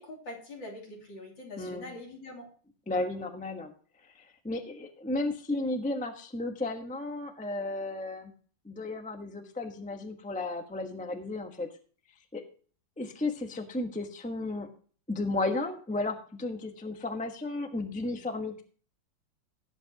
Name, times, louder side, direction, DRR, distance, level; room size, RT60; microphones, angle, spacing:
voice 1, 0.0-2.5, left 1 dB, 55° left, -2 dB, 3.8 m, -44 dB
voice 2, 2.9-3.7 4.1-8.3 8.6-11.7 12.3-12.4 13.0-14.7 15.1-18.6, left 2 dB, 5° left, 5 dB, 0.6 m, -34 dB
18.0 x 8.1 x 2.9 m, 0.42 s
omnidirectional pair, 2.4 m